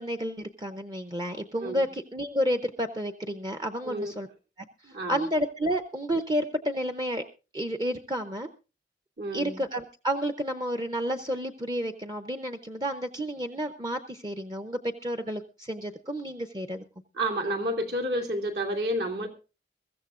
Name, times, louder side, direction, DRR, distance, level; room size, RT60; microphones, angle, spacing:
voice 1, 0.0-4.3 4.6-4.7 5.1-7.2 7.5-8.5 9.3-16.8, equal, 25° right, 0.7 m, -31 dB
voice 2, 4.8-5.2 9.2-9.6 17.1-19.3, right 1 dB, 65° right, 2.9 m, -30 dB
22.5 x 14.5 x 2.5 m
head